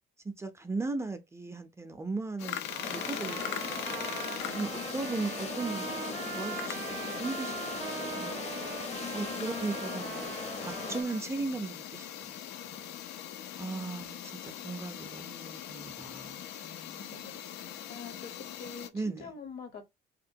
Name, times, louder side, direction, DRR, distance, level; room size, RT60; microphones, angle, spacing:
voice 1, 0.2-7.6 8.0-8.5 9.1-10.3 10.6-12.4 12.7-13.0 13.6-17.0 18.9-19.3, right 3 dB, 15° right, 0.4 m, -38 dB
sound 1, 2.4-18.9, left 10 dB, 90° left, 0.4 m, -42 dB
Trumpet, 2.7-11.2, right 10 dB, 80° right, 0.4 m, -42 dB
sound 2, 2.8-11.0, left 4 dB, 40° left, 0.6 m, -39 dB
voice 2, 4.7-5.1 8.9-10.1 13.5-14.1 16.9-19.9, left 5 dB, 70° left, 0.9 m, -47 dB
2.8 x 2.2 x 2.6 m
cardioid pair, 110°, 17 cm